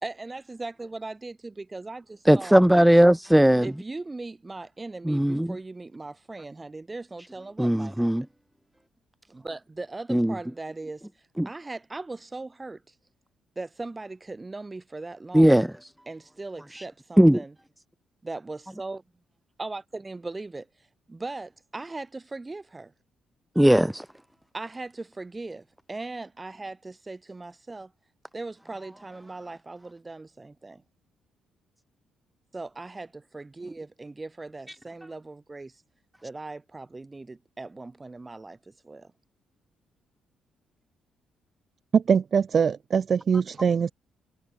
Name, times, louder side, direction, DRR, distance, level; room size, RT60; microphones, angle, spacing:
voice 1, 0.0-2.6 3.5-8.1 9.3-11.1 11.4-12.8 13.5-15.7 16.0-17.5 18.2-19.0 19.6-20.7 21.1-22.9 24.5-27.9 28.3-30.8 32.5-35.8 36.2-38.6 38.8-39.1, right 3 dB, 20° right, 3.5 m, -39 dB
voice 2, 2.3-3.7 5.1-5.6 7.6-8.2 10.1-10.3 11.4-11.5 15.3-15.7 16.7-16.8 17.2-17.4 23.6-24.0, equal, 5° right, 0.3 m, -18 dB
voice 3, 41.9-43.9, right 6 dB, 45° right, 0.6 m, -22 dB
cardioid pair, 90°, 0 cm